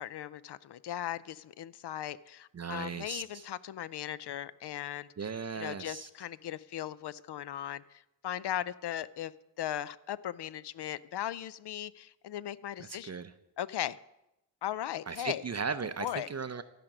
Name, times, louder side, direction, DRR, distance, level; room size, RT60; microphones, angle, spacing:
voice 1, 0.0-5.1 5.5-9.3 9.6-13.2 13.6-14.0 14.6-15.4 16.0-16.3, left 11 dB, 60° left, 17 dB, 0.5 m, -38 dB
voice 2, 2.5-3.5 5.2-6.1 12.8-13.3 15.1-16.6, right 5 dB, 35° right, 11 dB, 0.5 m, -37 dB
13.0 x 5.1 x 5.9 m, 0.91 s
cardioid pair, 50°, 48 cm